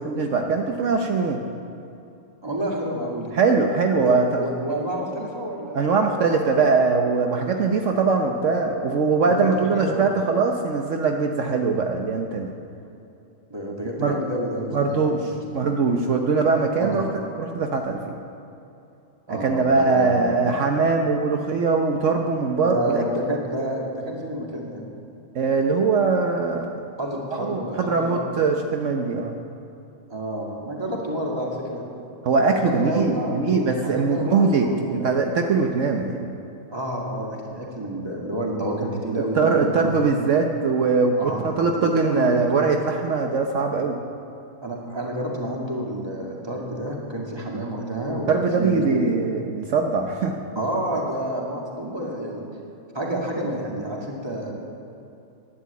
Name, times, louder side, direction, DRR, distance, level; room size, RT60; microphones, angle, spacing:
voice 1, 0.0-1.4 3.3-4.4 5.7-12.5 14.0-14.2 14.7-15.2 15.5-17.1 17.4-18.2 19.3-23.0 25.3-26.7 27.3-29.4 32.2-34.7 34.9-36.3 39.3-44.0 48.3-50.3, right 4 dB, 70° right, 3 dB, 1.2 m, -22 dB
voice 2, 2.4-3.3 3.9-6.6 9.2-10.1 13.5-14.9 15.2-15.3 16.8-17.0 19.3-20.5 22.6-24.8 27.0-28.3 30.1-31.8 32.5-35.2 36.7-40.1 41.2-41.4 41.8-42.4 44.6-49.1 50.5-52.4 52.9-54.5, right 1 dB, 20° right, -2 dB, 2.3 m, -29 dB
11.5 x 10.5 x 8.3 m, 2.7 s
omnidirectional pair, 1.4 m